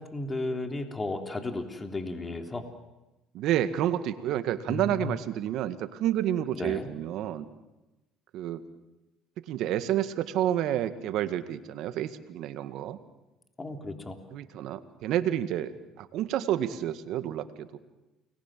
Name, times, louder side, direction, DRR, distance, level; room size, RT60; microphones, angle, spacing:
voice 1, 0.0-2.6 4.7-5.2 6.5-6.9 13.6-14.2, left 2 dB, 20° left, 5 dB, 3.5 m, -34 dB
voice 2, 3.3-7.5 8.3-8.6 9.5-13.0 14.3-17.8, right 11 dB, 65° right, 11 dB, 1.9 m, -29 dB
30.0 x 21.5 x 7.7 m, 1.0 s
supercardioid pair, 75°, 0 cm